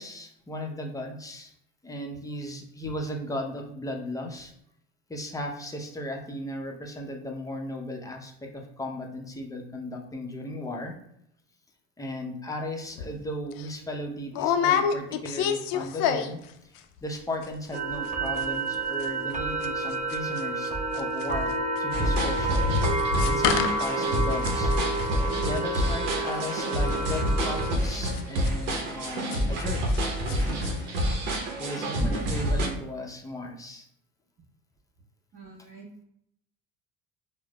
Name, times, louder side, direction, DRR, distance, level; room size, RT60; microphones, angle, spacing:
voice 1, 0.0-1.5 1.8-4.5 5.1-11.0 12.0-16.7 17.0-21.5 21.8-22.6 23.2-24.7 25.4-29.8 30.3-31.0 31.6-33.9, left 1 dB, 10° left, 1 dB, 0.6 m, -36 dB
sound 1, 13.0-13.1 13.5-13.7 14.3-16.5 16.8-17.2 17.4-17.5 17.7-18.1 18.4-20.7 20.9-30.0 30.3-30.7 31.0-31.1, left 7 dB, 65° left, 0.5 m, -29 dB
sound 2, 17.7-27.7, right 2 dB, 20° right, 0.8 m, -30 dB
sound 3, 21.9-32.7, equal, 85° right, 0.7 m, -28 dB
voice 2, 32.0-32.4 35.3-36.0, right 1 dB, 40° right, -6 dB, 1.3 m, -40 dB
4.6 x 2.1 x 2.2 m, 0.75 s
supercardioid pair, 80°, 37 cm